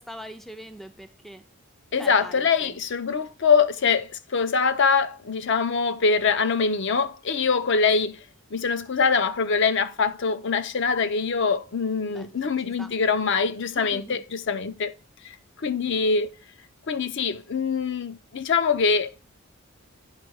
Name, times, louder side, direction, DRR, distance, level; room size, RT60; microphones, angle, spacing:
voice 1, 0.0-1.4 2.0-2.8 12.1-12.9 13.8-14.2, equal, ahead, 0.4 m, -42 dB
voice 2, 1.9-8.2 8.5-14.9 15.6-16.3 16.9-19.1, left 5 dB, 55° left, 0.6 m, -23 dB
10.0 x 3.6 x 6.2 m
head